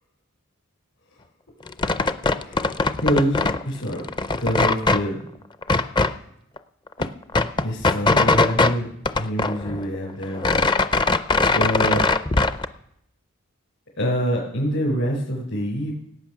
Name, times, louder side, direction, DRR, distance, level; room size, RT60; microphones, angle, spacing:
sound 1, 1.7-3.6 3.9-5.0 5.6-6.1 6.6-6.7 6.9-8.7 9.1-10.0 10.2-12.7, left 3 dB, 20° left, 0.5 m, -20 dB
voice 1, 3.0-4.1 4.4-5.2 7.6-8.9 9.1-10.7 11.4-12.0 14.0-15.9, equal, 65° left, -5 dB, 4.5 m, -25 dB
17.5 x 8.8 x 6.2 m, 0.75 s
head